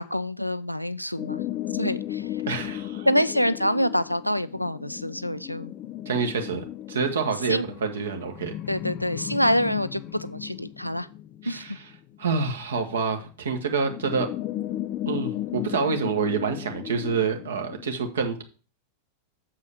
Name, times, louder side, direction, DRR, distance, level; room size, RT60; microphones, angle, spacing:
voice 1, 0.0-1.4 1.8-2.2 3.1-5.7 7.5-7.7 8.7-11.1 11.5-11.6, equal, 90° left, 14 dB, 0.4 m, -26 dB
sound 1, 1.2-13.0 13.8-17.9, left 13 dB, 35° left, 0.6 m, -35 dB
voice 2, 2.5-3.1 6.0-8.5 11.4-11.8 12.2-14.3 15.1-18.4, right 5 dB, 65° right, 5 dB, 1.4 m, -27 dB
7.3 x 4.7 x 6.6 m, 0.36 s
figure-of-eight pair, 90°, 0 cm